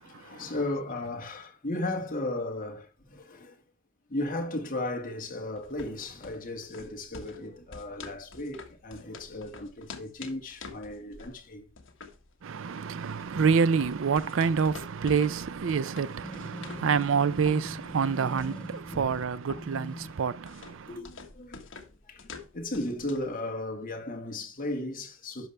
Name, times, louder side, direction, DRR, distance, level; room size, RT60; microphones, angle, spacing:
voice 1, 0.0-3.5 4.1-11.6 18.9-19.2 20.9-21.6 22.1-22.3 22.5-25.5, left 1 dB, 40° left, 1.8 m, -35 dB
sound 1, 5.6-23.4, left 4 dB, 60° left, 1.5 m, -48 dB
voice 2, 12.4-21.0, right 6 dB, 65° right, 0.4 m, -27 dB
sound 2, 16.2-20.2, left 1 dB, 5° left, 0.6 m, -42 dB
11.5 x 5.7 x 3.3 m
head